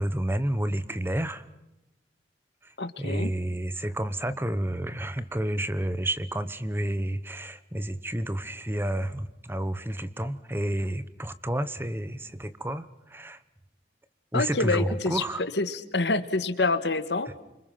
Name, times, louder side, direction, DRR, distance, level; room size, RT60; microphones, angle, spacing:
voice 1, 0.0-1.5 2.6-2.7 3.0-13.4 14.3-15.4, right 1 dB, 10° right, 14 dB, 1.0 m, -30 dB
voice 2, 2.8-3.3 14.3-15.2 15.6-17.4, left 3 dB, 70° left, 12 dB, 1.6 m, -27 dB
29.0 x 26.0 x 5.8 m, 0.93 s
head